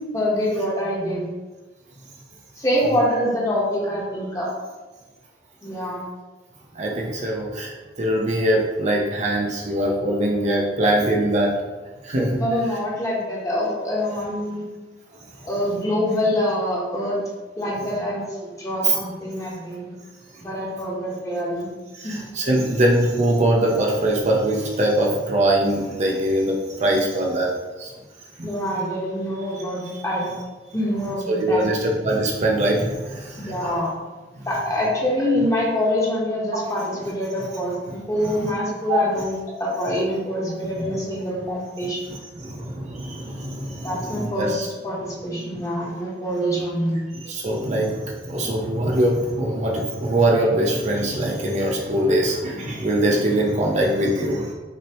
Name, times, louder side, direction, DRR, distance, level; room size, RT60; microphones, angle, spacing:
voice 1, 0.1-1.3 2.6-4.5 5.6-6.1 12.4-14.6 15.4-17.2 17.6-19.9 20.4-21.7 22.0-22.1 28.4-30.3 30.7-31.6 33.4-33.9 34.4-42.0 43.8-44.6 44.8-47.0 47.7-47.8, equal, 15° left, -5 dB, 1.1 m, -25 dB
voice 2, 6.8-7.7 8.0-11.5 12.1-12.4 18.8-19.0 22.0-26.5 26.8-27.5 27.8-27.9 28.4-28.5 31.3-33.2 33.6-33.7 38.2-38.5 38.9-39.0 42.1-44.7 47.3-48.0 48.2-54.5, right 1 dB, 40° right, -1 dB, 0.6 m, -22 dB
6.1 x 2.9 x 2.9 m, 1.2 s
head